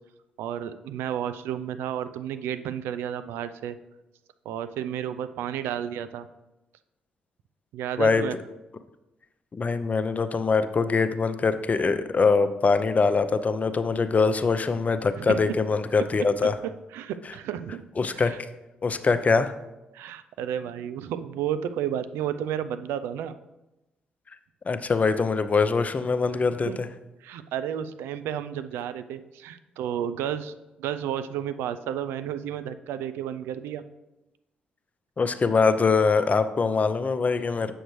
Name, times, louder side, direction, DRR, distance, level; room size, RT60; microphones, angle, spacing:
voice 1, 0.4-3.8 4.5-6.3 7.7-8.4 15.2-15.6 16.4-17.8 18.1-18.4 19.9-23.4 26.5-26.8 27.2-33.8, right 10 dB, 70° right, 12 dB, 0.4 m, -32 dB
voice 2, 9.5-16.6 18.0-18.3 18.8-19.5 24.7-26.9 35.2-37.7, left 4 dB, 35° left, 10 dB, 0.6 m, -23 dB
7.8 x 6.3 x 3.1 m, 0.98 s
hypercardioid pair, 40°, 4 cm